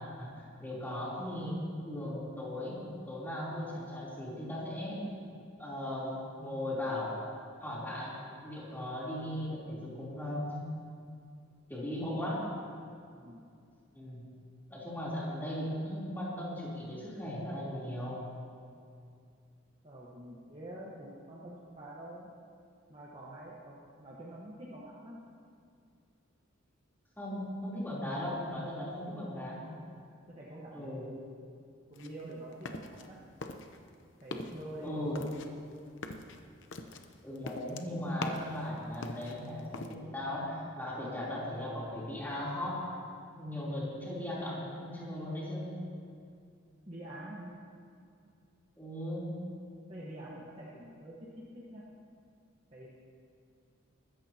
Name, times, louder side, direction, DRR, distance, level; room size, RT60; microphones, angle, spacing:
voice 1, 0.2-1.6 1.8-2.8 3.1-5.0 5.6-7.2 7.6-8.2 8.4-10.6 11.7-12.5 13.9-14.2 14.7-18.2 27.2-29.6 30.7-31.1 34.8-35.2 37.2-42.8 43.4-45.7 48.8-49.2, left 1 dB, 10° left, -8 dB, 3.6 m, -37 dB
voice 2, 13.1-13.4 19.8-22.3 22.9-25.2 30.3-31.4 31.9-33.2 34.2-35.4 46.8-47.5 49.9-51.8 52.7-52.9, right 1 dB, 30° right, -6 dB, 1.4 m, -46 dB
sound 1, 31.9-33.1 33.4-33.9 34.2-34.6 35.2-38.6 38.9-39.9, left 2 dB, 65° left, 0.8 m, -42 dB
23.0 x 14.0 x 3.0 m, 2.4 s
head